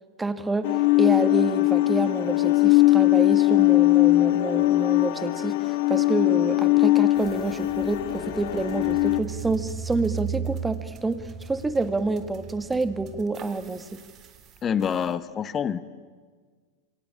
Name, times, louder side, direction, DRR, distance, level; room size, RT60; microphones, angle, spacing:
voice 1, 0.2-14.0, right 3 dB, 10° right, 12 dB, 1.9 m, -28 dB
sound 1, 0.6-9.2, left 18 dB, 55° left, 1.8 m, -20 dB
sound 2, 7.2-15.1, right 7 dB, 35° right, 3.4 m, -38 dB
voice 2, 14.6-15.8, left 8 dB, 25° left, 15 dB, 1.2 m, -26 dB
27.5 x 24.0 x 8.8 m, 1.5 s
figure-of-eight pair, 95°, 0 cm